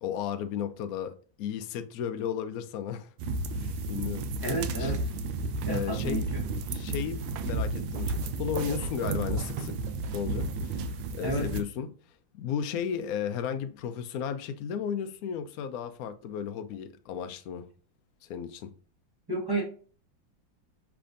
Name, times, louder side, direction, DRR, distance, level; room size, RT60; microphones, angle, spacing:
voice 1, 0.0-3.1 3.5-4.3 4.8-4.9 5.7-6.3 6.7-9.8 10.1-11.9 12.4-17.7 18.2-18.7, left 8 dB, 75° left, 0.8 m, -34 dB
sound 1, 3.2-11.6, right 3 dB, 80° right, 1.3 m, -32 dB
voice 2, 4.4-5.1 5.6-6.4 11.2-11.5 19.3-19.6, right 1 dB, 15° right, 0.9 m, -31 dB
6.0 x 3.4 x 2.5 m
omnidirectional pair, 2.1 m